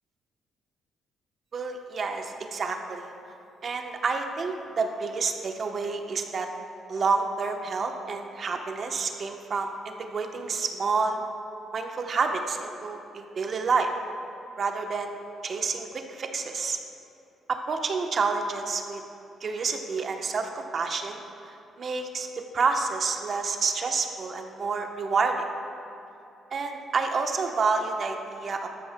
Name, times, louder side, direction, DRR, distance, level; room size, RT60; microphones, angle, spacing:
voice 1, 1.5-3.1 3.6-6.5 6.9-11.2 11.7-13.9 14.6-15.2 15.4-16.8 17.5-19.0 19.4-21.2 21.8-22.3 22.5-25.5 26.5-28.7, right 4 dB, 50° right, 4 dB, 0.9 m, -29 dB
13.5 x 13.0 x 2.2 m, 2.8 s
cardioid pair, 90°, 0 cm